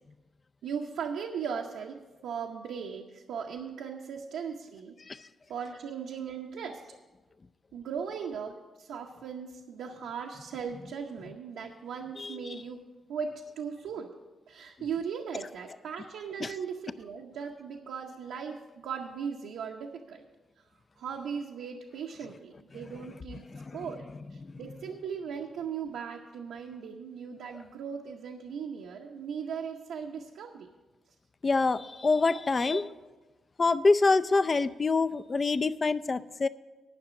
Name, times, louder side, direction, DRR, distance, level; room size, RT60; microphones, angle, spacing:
voice 1, 0.6-5.0 5.5-7.0 7.7-14.2 14.5-20.3 21.0-23.5 23.7-30.7 32.2-32.4 32.7-32.8, right 6 dB, 90° right, 0 dB, 0.7 m, -38 dB
voice 2, 12.2-12.6 16.4-16.5 22.7-24.7 31.4-32.9 33.6-36.5, left 3 dB, 35° left, 14 dB, 0.4 m, -27 dB
10.0 x 5.9 x 8.2 m, 1.2 s
cardioid pair, 85°, 0 cm